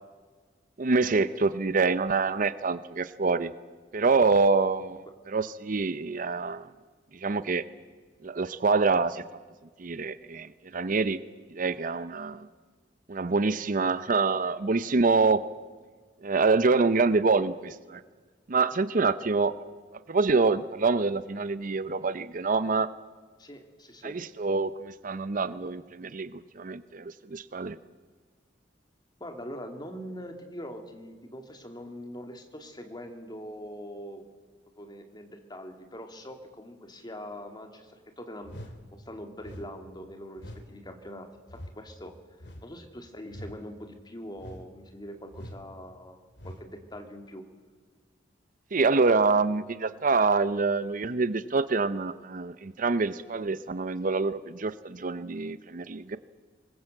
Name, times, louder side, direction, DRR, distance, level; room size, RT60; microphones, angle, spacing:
voice 1, 0.8-3.5 3.9-6.7 7.1-7.6 8.2-9.2 9.8-11.2 11.5-12.5 13.1-15.4 16.2-18.0 18.5-19.5 20.1-22.9 24.0-27.8 48.7-56.2, right 4 dB, 45° right, 14 dB, 0.6 m, -26 dB
voice 2, 23.4-24.2 29.2-34.2 34.8-42.1 42.6-47.4, equal, 25° left, 4 dB, 2.4 m, -43 dB
sound 1, 38.4-38.8 39.4-39.7 40.4-40.7 41.5-41.8 42.4-42.7 43.3-43.6 44.4-44.7 45.3-45.6 46.4-46.7, equal, 65° left, 2.5 m, -43 dB
24.0 x 20.5 x 7.8 m, 1.5 s
head